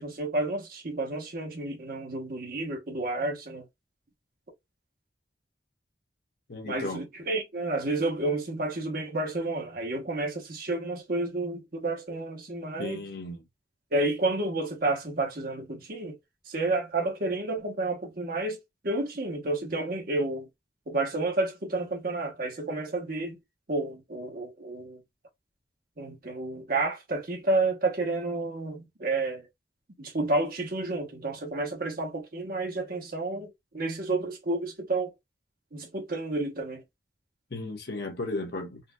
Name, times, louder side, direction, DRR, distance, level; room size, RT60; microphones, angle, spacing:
voice 1, 0.0-3.6 6.7-13.0 13.9-16.2 16.5-18.6 18.8-20.5 20.9-23.4 23.7-25.0 26.0-29.5 30.0-35.1 35.7-36.8, right 2 dB, 55° right, 1.0 m, -30 dB
voice 2, 6.5-7.1 12.8-13.4 37.5-38.8, left 2 dB, 60° left, 0.9 m, -35 dB
4.0 x 2.4 x 2.3 m
head